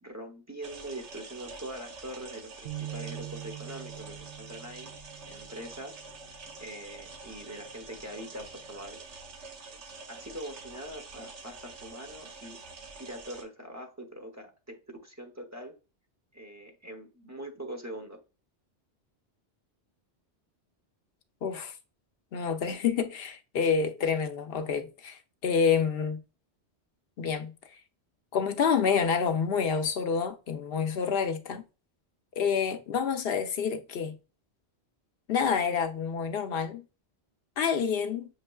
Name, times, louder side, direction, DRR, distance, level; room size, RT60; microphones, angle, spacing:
voice 1, 0.0-4.9 5.3-6.0 6.6-9.0 9.7-9.8 10.1-12.6 13.0-15.8 16.3-18.2, right 1 dB, 15° right, 0.8 m, -43 dB
sound 1, 0.6-13.4, right 4 dB, 85° right, 1.2 m, -46 dB
sound 2, 2.7-6.2, right 14 dB, 60° right, 0.8 m, -43 dB
voice 2, 21.4-21.7 22.3-26.2 27.2-27.5 28.3-31.6 32.4-34.2 35.3-36.8 37.6-38.3, left 6 dB, 65° left, 0.8 m, -28 dB
6.6 x 3.2 x 2.3 m
omnidirectional pair, 1.1 m